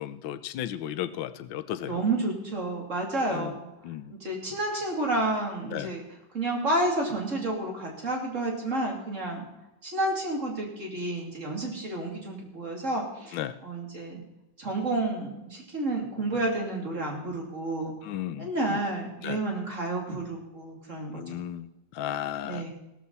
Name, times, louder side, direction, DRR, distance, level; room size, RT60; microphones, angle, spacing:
voice 1, 0.0-2.0 3.3-3.6 3.8-4.1 5.7-5.9 13.3-13.6 18.0-18.8 19.2-19.4 21.1-21.7 21.9-22.7, left 11 dB, 90° left, 12 dB, 1.5 m, -34 dB
voice 2, 1.8-3.7 4.1-6.0 6.3-9.4 9.8-14.2 14.6-17.9 18.4-21.2 22.4-22.7, right 2 dB, 40° right, 0 dB, 3.3 m, -30 dB
16.5 x 14.0 x 4.1 m, 0.97 s
omnidirectional pair, 2.0 m